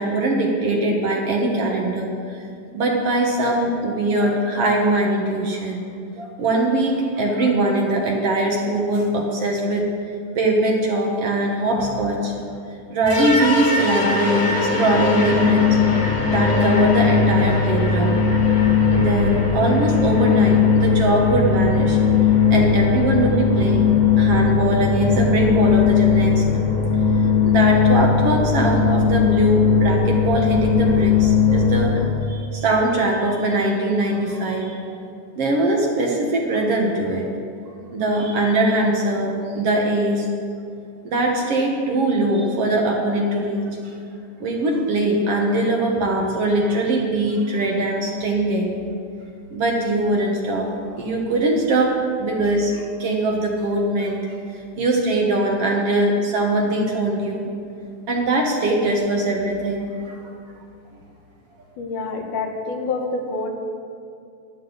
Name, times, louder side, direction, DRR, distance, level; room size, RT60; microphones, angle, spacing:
voice 1, 0.0-2.1 2.7-5.8 6.1-9.9 10.4-12.3 12.9-14.5 14.8-15.7 16.3-18.3 18.9-22.0 22.5-26.7 27.4-32.0 32.3-35.0 35.4-37.3 37.9-40.3 41.0-43.9 44.4-48.7 49.5-50.7 51.0-54.2 54.8-57.5 58.1-60.3, right 2 dB, 60° right, 0 dB, 2.0 m, -21 dB
sound 1, 13.1-32.1, left 6 dB, 30° left, 1.6 m, -18 dB
voice 2, 61.8-63.5, left 3 dB, 85° left, 2 dB, 2.7 m, -27 dB
14.5 x 11.0 x 4.0 m, 2.4 s
omnidirectional pair, 3.5 m